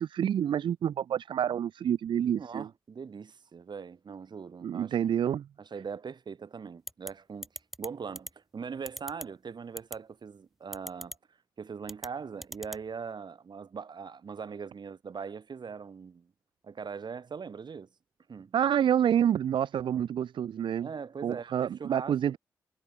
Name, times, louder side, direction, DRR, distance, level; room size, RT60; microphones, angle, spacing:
voice 1, 0.0-2.7 4.6-5.5 18.5-20.9 21.2-22.4, right 9 dB, 80° right, 0.8 m, -28 dB
voice 2, 2.3-5.0 5.6-7.5 7.8-11.2 11.6-16.3 16.6-17.9 18.3-18.5 20.8-22.4, right 6 dB, 60° right, 5.7 m, -41 dB
sound 1, 6.9-7.1 7.4-7.9 8.2-8.3 8.9-9.2 9.8-10.0 10.7-11.2 11.8-12.1 12.4-12.8, equal, ahead, 0.8 m, -39 dB
supercardioid pair, 40°, 8 cm